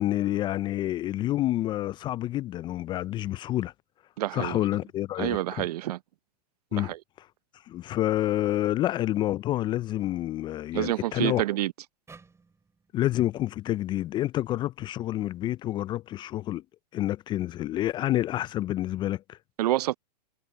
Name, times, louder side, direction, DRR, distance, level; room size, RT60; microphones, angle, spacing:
voice 1, 0.0-3.7 4.3-5.7 6.7-6.9 7.7-11.4 12.9-16.6 16.9-19.4, left 14 dB, 20° left, 0.3 m, -28 dB
voice 2, 4.2-4.6 5.2-6.0 6.8-7.0 10.7-11.7 19.6-20.0, right 14 dB, 65° right, 0.7 m, -27 dB
sound 1, 12.1-15.3, right 4 dB, 15° right, 3.8 m, -57 dB
hypercardioid pair, 110°, 21 cm